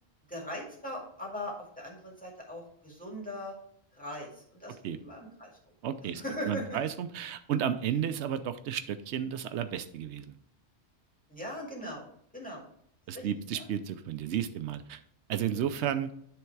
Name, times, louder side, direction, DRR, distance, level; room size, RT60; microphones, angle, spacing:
voice 1, 0.3-3.5 3.9-5.5 6.1-6.8 11.3-12.1 12.3-12.7 13.1-13.3 13.5-13.6, left 1 dB, 5° left, -3 dB, 2.1 m, -40 dB
voice 2, 5.8-10.4 13.1-15.0 15.3-16.1, right 9 dB, 90° right, 11 dB, 0.9 m, -32 dB
10.5 x 3.5 x 4.6 m, 0.67 s
omnidirectional pair, 1.1 m